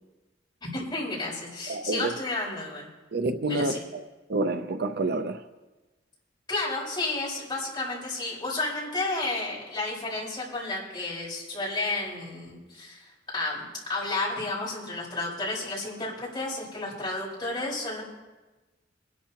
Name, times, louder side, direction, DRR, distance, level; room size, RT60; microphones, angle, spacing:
voice 1, 0.7-2.9 3.5-3.8 6.5-13.6 13.9-18.0, left 2 dB, 25° left, 4.6 m, -32 dB
voice 2, 1.7-2.1 3.1-4.0 4.3-5.4, right 2 dB, 60° right, 0.6 m, -28 dB
24.0 x 11.5 x 2.9 m
head